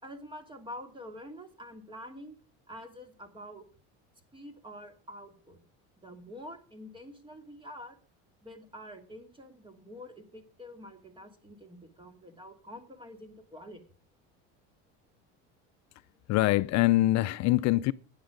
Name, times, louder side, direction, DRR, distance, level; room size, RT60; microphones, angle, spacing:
voice 1, 0.0-2.4 2.7-3.7 4.3-5.6 6.0-8.0 8.4-13.8, equal, 15° right, 2.7 m, -47 dB
voice 2, 16.3-17.9, left 17 dB, 55° left, 0.5 m, -24 dB
16.0 x 9.9 x 5.2 m
supercardioid pair, 115°, 33 cm